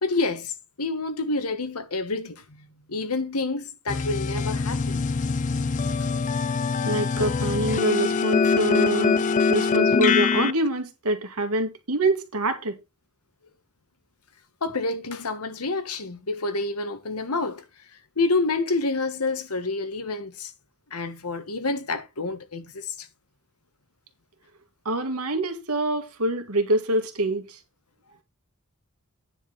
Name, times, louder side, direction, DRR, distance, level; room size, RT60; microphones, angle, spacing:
voice 1, 0.0-5.0 14.6-17.6 18.2-20.5 20.9-23.1, left 3 dB, 85° left, 1.6 m, -28 dB
sound 1, 3.9-10.5, left 4 dB, 35° left, 0.4 m, -23 dB
voice 2, 6.8-12.8 24.9-27.6, right 1 dB, 85° right, 2.0 m, -25 dB
9.8 x 4.5 x 6.2 m
head